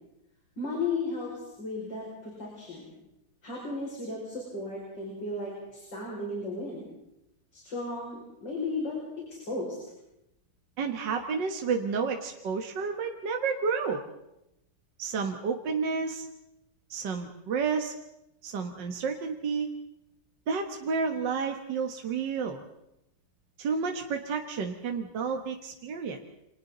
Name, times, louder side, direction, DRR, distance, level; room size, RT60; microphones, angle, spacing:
voice 1, 0.6-2.9 3.4-6.8 7.5-9.8, left 3 dB, 65° left, -3 dB, 6.2 m, -35 dB
voice 2, 10.8-14.0 15.0-16.3 16.9-17.9 18.4-19.7 20.5-22.6 23.6-26.2, right 5 dB, 65° right, 4 dB, 2.1 m, -30 dB
29.0 x 25.5 x 4.0 m, 0.84 s
omnidirectional pair, 2.1 m